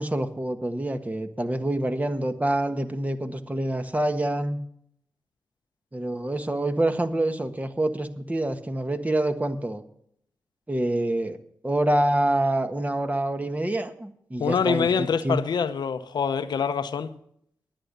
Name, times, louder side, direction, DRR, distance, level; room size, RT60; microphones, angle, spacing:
voice 1, 0.0-4.6 5.9-9.8 10.7-11.4 11.6-15.4, right 1 dB, 20° right, 1.5 m, -26 dB
voice 2, 14.4-17.1, left 6 dB, 75° left, 0.8 m, -25 dB
11.0 x 8.9 x 6.7 m
supercardioid pair, 40°, 7 cm